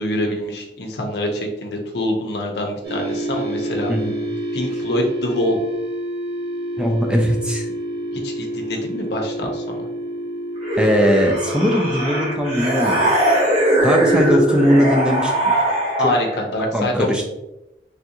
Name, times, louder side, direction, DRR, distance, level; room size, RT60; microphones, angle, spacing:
voice 1, 0.0-3.9 4.5-5.6 8.1-9.9 13.8-14.3 16.0-17.2, left 1 dB, 75° left, 2 dB, 0.6 m, -25 dB
sound 1, 2.8-13.1, right 1 dB, 85° right, 1.0 m, -28 dB
voice 2, 6.8-7.7 10.8-13.0 13.8-15.3 16.7-17.2, equal, 5° right, 1 dB, 0.3 m, -19 dB
sound 2, 10.6-16.5, right 1 dB, 35° right, 0.8 m, -20 dB
3.4 x 2.4 x 2.8 m, 0.92 s
head